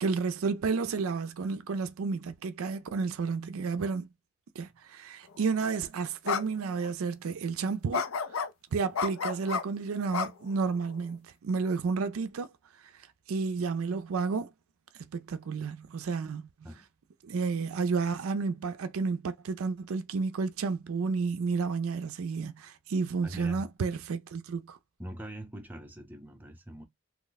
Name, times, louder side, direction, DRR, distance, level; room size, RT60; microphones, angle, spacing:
voice 1, 0.0-4.1 4.6-8.1 8.3-8.5 8.7-12.5 13.3-14.5 15.0-16.5 17.2-24.8, right 4 dB, 70° right, 0.4 m, -31 dB
sound 1, 5.4-5.6 6.3-6.4 6.8-6.9 7.9-8.5 8.9-9.6 10.1-10.9, left 6 dB, 70° left, 0.5 m, -31 dB
voice 2, 23.2-23.6 25.0-26.9, equal, 10° right, 0.6 m, -42 dB
3.0 x 2.1 x 3.9 m
head